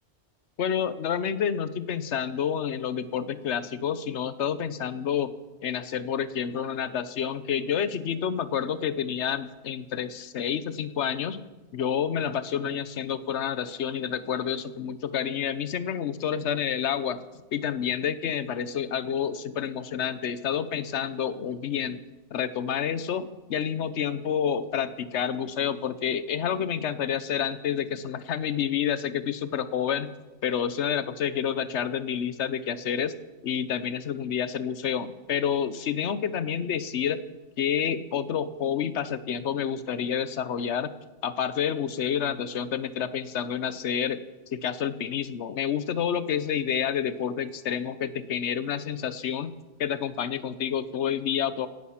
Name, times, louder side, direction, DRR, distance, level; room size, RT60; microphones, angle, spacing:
voice 1, 0.6-5.3 5.6-11.4 11.7-17.2 17.5-22.0 22.3-30.1 30.4-33.1 33.4-37.2 37.6-40.9 41.2-44.2 44.5-49.5 49.8-51.7, left 8 dB, 90° left, 14 dB, 1.1 m, -29 dB
17.0 x 11.0 x 5.7 m, 1.1 s
omnidirectional pair, 1.1 m